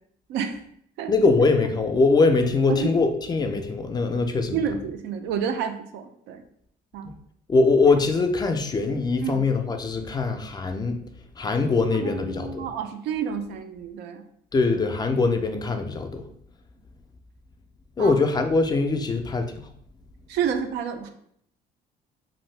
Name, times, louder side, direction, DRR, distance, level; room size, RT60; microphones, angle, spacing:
voice 1, 1.1-4.6 7.0-7.1 7.5-11.0 11.4-12.7 14.5-16.2 18.0-19.5, left 3 dB, 25° left, 6 dB, 0.4 m, -22 dB
voice 2, 4.5-6.4 6.9-7.1 9.2-9.4 12.0-14.2 18.0-18.2 20.3-21.1, right 7 dB, 85° right, 7 dB, 0.4 m, -29 dB
2.6 x 2.6 x 3.2 m, 0.68 s
cardioid pair, 110°, 17 cm